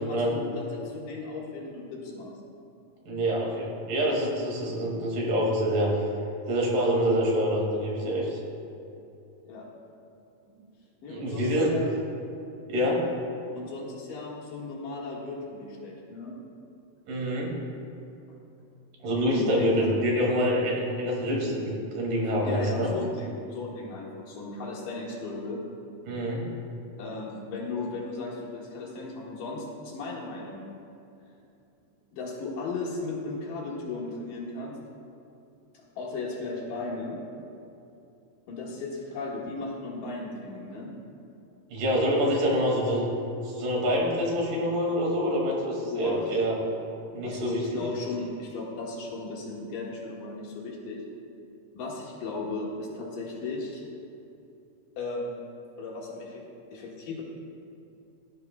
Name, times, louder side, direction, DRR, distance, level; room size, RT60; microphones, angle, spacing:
voice 1, 0.0-2.3 9.4-9.7 11.0-11.9 13.5-16.4 19.3-20.0 22.4-25.6 27.0-30.7 32.1-34.8 36.0-37.2 38.5-40.9 45.9-46.2 47.2-51.0 51.7-53.8 55.0-55.4 55.8-56.4 56.7-57.2, left 3 dB, 75° left, -3 dB, 3.3 m, -36 dB
voice 2, 3.1-5.9 6.5-8.4 11.1-11.7 12.7-13.0 17.1-17.6 19.0-22.9 26.1-26.5 41.7-43.1 43.4-46.6 47.1-47.8, equal, 75° right, -2 dB, 3.8 m, -26 dB
18.0 x 12.0 x 2.3 m, 2.7 s
omnidirectional pair, 3.9 m